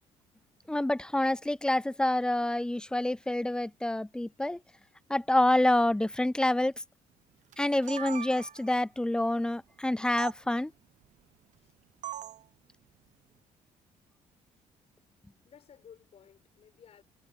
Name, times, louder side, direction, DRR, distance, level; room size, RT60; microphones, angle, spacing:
voice 1, 0.7-4.6 5.1-6.7 7.6-10.7, left 1 dB, 5° left, 0.4 m, -27 dB
sound 1, 7.5-8.8 10.2-10.3 12.0-12.4, right 10 dB, 65° right, 1.1 m, -40 dB
voice 2, 15.4-17.0, left 8 dB, 50° left, 6.1 m, -56 dB
cardioid pair, 105°, 13 cm